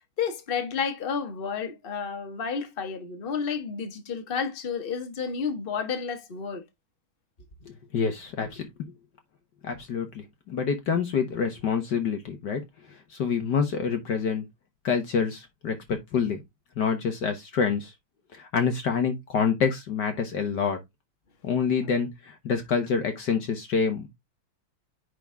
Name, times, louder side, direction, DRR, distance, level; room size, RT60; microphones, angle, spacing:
voice 1, 0.2-6.6 21.8-21.9, left 6 dB, 30° left, 1.4 m, -31 dB
voice 2, 7.9-8.7 9.6-12.6 13.1-14.4 14.8-16.4 16.8-17.9 18.3-20.8 21.4-24.1, left 6 dB, 55° left, 1.6 m, -27 dB
9.8 x 4.0 x 3.5 m
omnidirectional pair, 2.4 m